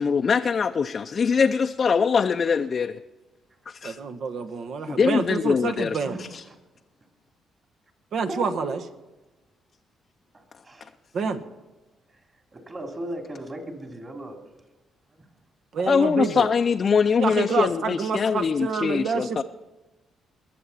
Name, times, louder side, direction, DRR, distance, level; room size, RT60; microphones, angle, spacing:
voice 1, 0.0-3.0 3.7-4.0 4.9-6.0 6.3-6.4 15.8-19.4, left 6 dB, 45° left, 6 dB, 0.5 m, -22 dB
voice 2, 3.8-6.2 8.1-8.8 11.1-11.4 15.7-16.5 17.2-19.4, right 5 dB, 65° right, 7 dB, 1.2 m, -28 dB
voice 3, 6.0-6.6 8.3-8.9 10.3-10.9 12.1-12.2 12.5-14.5 15.1-15.2, right 1 dB, 30° right, 3 dB, 3.0 m, -37 dB
21.0 x 7.6 x 5.7 m, 1.1 s
cardioid pair, 90°, 0 cm